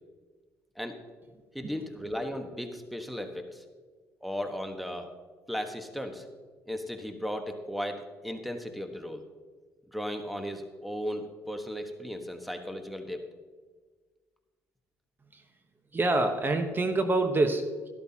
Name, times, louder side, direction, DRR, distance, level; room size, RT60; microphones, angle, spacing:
voice 1, 1.5-3.6 4.2-5.1 5.5-6.2 6.7-9.2 9.9-13.2, equal, ahead, 6 dB, 1.3 m, -36 dB
voice 2, 15.9-17.9, right 2 dB, 30° right, 6 dB, 1.1 m, -26 dB
13.0 x 12.0 x 2.9 m, 1.4 s
supercardioid pair, 65°, 6 cm